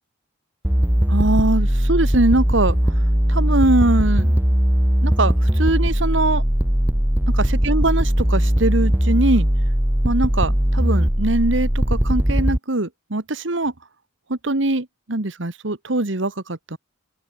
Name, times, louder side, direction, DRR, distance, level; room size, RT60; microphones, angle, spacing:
sound 1, 0.6-12.6, equal, 10° right, 0.9 m, -19 dB
voice 1, 1.1-2.9 3.3-4.3 5.0-6.4 7.4-9.5 10.0-13.7 14.3-16.8, right 2 dB, 70° right, 1.8 m, -22 dB
open air
head